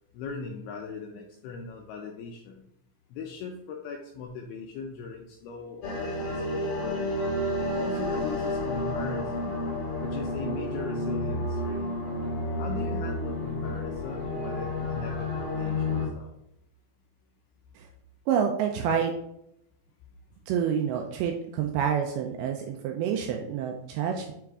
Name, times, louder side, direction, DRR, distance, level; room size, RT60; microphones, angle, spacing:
voice 1, 0.1-2.7 3.1-7.1 7.6-9.7 10.0-12.0 12.6-16.3, left 5 dB, 80° left, 1 dB, 2.3 m, -39 dB
sound 1, 5.8-16.1, left 1 dB, 45° left, 3.3 m, -30 dB
voice 2, 18.3-19.1 20.5-24.3, right 7 dB, 85° right, 3 dB, 2.2 m, -28 dB
9.2 x 3.5 x 3.5 m, 0.77 s
omnidirectional pair, 5.0 m